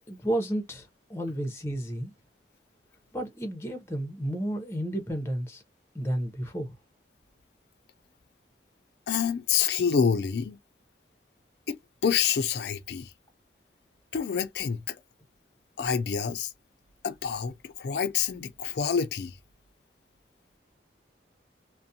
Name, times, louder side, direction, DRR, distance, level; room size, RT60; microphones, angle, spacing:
voice 1, 0.1-2.1 3.1-5.6 5.9-6.7, right 1 dB, 15° left, 0.6 m, -32 dB
voice 2, 9.1-10.6 11.7-11.8 12.0-13.1 14.1-15.0 15.8-16.5 17.0-19.3, left 7 dB, 70° left, 0.4 m, -27 dB
2.4 x 2.1 x 2.6 m
head